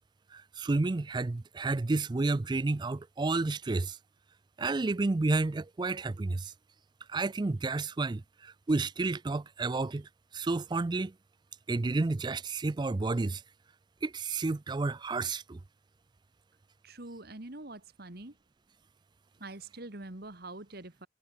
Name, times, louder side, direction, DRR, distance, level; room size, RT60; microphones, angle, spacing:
voice 1, 0.3-4.0 4.6-6.5 7.1-10.1 10.3-11.1 11.7-13.4 14.0-15.6, right 3 dB, 25° right, 0.4 m, -31 dB
voice 2, 16.8-18.4 19.4-21.1, right 2 dB, 55° right, 2.2 m, -44 dB
head